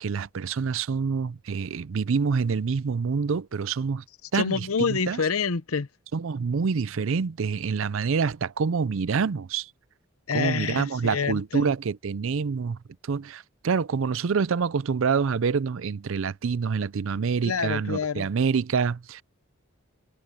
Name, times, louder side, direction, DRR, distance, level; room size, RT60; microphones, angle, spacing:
voice 1, 0.0-4.0 4.3-5.2 6.1-9.7 10.3-19.2, right 5 dB, 65° right, 0.5 m, -27 dB
voice 2, 4.3-5.9 10.3-11.7 17.4-18.3, left 5 dB, 90° left, 0.8 m, -27 dB
head